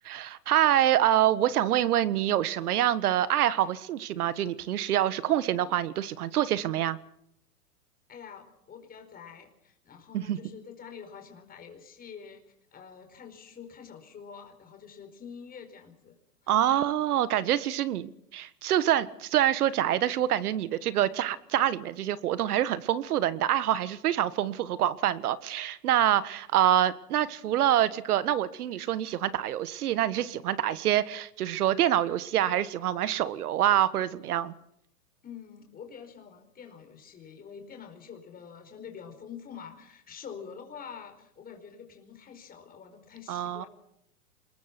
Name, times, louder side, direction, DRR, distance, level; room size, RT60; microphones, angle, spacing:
voice 1, 0.0-7.0 10.1-10.4 16.5-34.5 43.3-43.6, right 12 dB, 70° right, 1.6 m, -26 dB
voice 2, 8.1-12.4 12.7-16.2 16.4-16.5 35.2-43.7, left 7 dB, 20° left, 4.8 m, -46 dB
26.0 x 21.5 x 6.1 m
hypercardioid pair, 135°, 46 cm